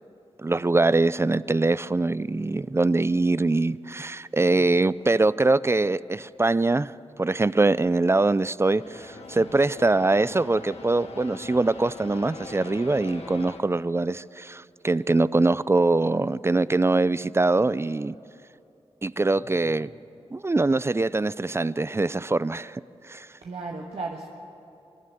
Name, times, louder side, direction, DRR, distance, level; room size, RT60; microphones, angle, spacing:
voice 1, 0.4-6.9 7.2-18.2 19.0-19.9 20.3-23.3, right 2 dB, 25° right, 0.4 m, -23 dB
sound 1, 8.8-13.6, left 3 dB, 75° left, 1.7 m, -42 dB
voice 2, 19.4-19.8 23.4-24.3, right 3 dB, 65° right, 1.5 m, -37 dB
25.0 x 11.0 x 9.2 m
cardioid pair, 50°, 11 cm